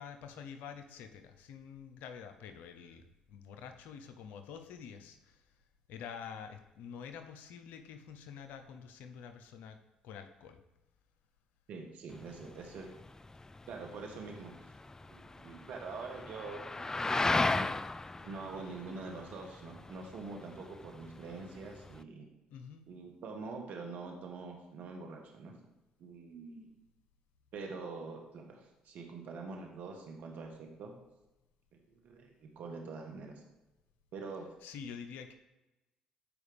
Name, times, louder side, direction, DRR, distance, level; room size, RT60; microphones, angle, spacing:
voice 1, 0.0-5.5 5.9-9.8 10.0-10.6 22.5-22.9 34.6-35.3, left 7 dB, 75° left, 7 dB, 0.8 m, -47 dB
voice 2, 11.7-12.9 13.7-14.7 15.0-16.7 18.2-22.3 22.9-25.5 26.0-26.7 27.5-30.9 31.9-33.4 34.1-34.4, right 4 dB, 65° right, 2 dB, 1.4 m, -45 dB
sound 1, 12.1-22.0, left 2 dB, 20° left, 0.4 m, -37 dB
13.5 x 4.9 x 3.5 m, 1.0 s
hypercardioid pair, 55°, 3 cm